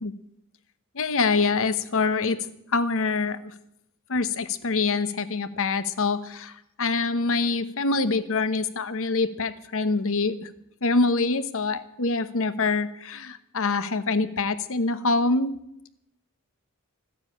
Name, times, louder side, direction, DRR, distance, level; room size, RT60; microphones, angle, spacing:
voice 1, 0.9-2.4 2.7-3.4 4.1-6.5 6.8-10.5 10.8-15.6, left 3 dB, 65° left, 13 dB, 1.0 m, -25 dB
14.5 x 9.8 x 8.5 m, 0.79 s
head